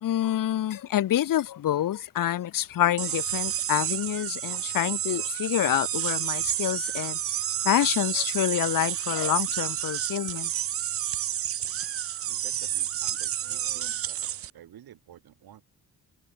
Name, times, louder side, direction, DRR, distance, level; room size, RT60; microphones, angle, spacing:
voice 1, 0.0-7.2 7.6-10.5, left 12 dB, 65° left, 0.8 m, -27 dB
sound 1, 3.0-14.5, right 11 dB, 40° right, 0.4 m, -30 dB
voice 2, 12.3-15.6, right 11 dB, 80° right, 3.2 m, -51 dB
cardioid pair, 100°, 36 cm